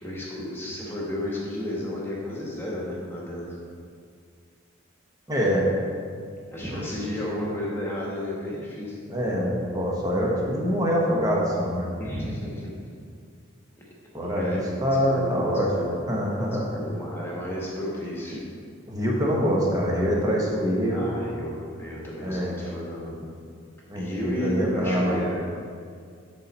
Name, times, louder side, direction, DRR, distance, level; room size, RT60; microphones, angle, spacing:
voice 1, 0.0-3.6 6.5-9.0 12.0-12.7 14.3-14.6 14.9-16.0 16.7-18.4 20.9-23.2 23.9-25.4, left 1 dB, 10° left, -5 dB, 1.5 m, -32 dB
voice 2, 5.3-5.7 6.7-6.8 7.2-7.3 9.1-11.9 14.1-16.7 18.9-21.1 22.2-22.5 23.9-25.2, equal, 15° right, -3 dB, 1.2 m, -25 dB
11.0 x 4.1 x 4.2 m, 2.2 s
head